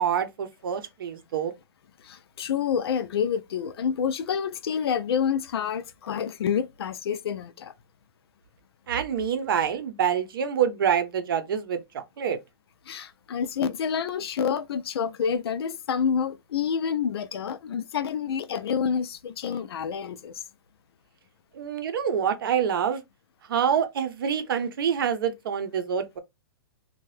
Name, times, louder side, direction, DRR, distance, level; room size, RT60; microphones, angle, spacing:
voice 1, 0.0-1.5 8.9-12.4 21.5-23.0 23.5-26.2, right 8 dB, 60° right, 0.6 m, -26 dB
voice 2, 2.0-7.7 12.9-20.4, left 7 dB, 80° left, 0.5 m, -28 dB
2.7 x 2.2 x 3.2 m
hypercardioid pair, 175°, 13 cm